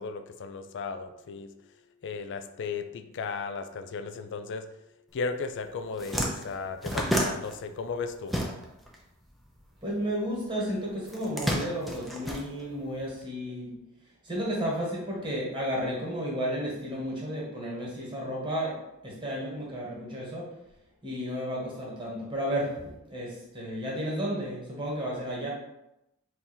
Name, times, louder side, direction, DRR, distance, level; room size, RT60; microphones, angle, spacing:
voice 1, 0.0-1.5 2.0-4.7 5.1-8.3, left 4 dB, 55° left, 9 dB, 0.4 m, -35 dB
sound 1, 5.4-5.5 5.8-8.9 9.2-10.4 11.0-13.1, equal, ahead, 0.6 m, -31 dB
voice 2, 9.8-13.7 14.2-18.8 19.0-20.5 21.0-25.5, equal, 20° right, -4 dB, 1.4 m, -32 dB
3.7 x 2.8 x 4.3 m, 0.89 s
head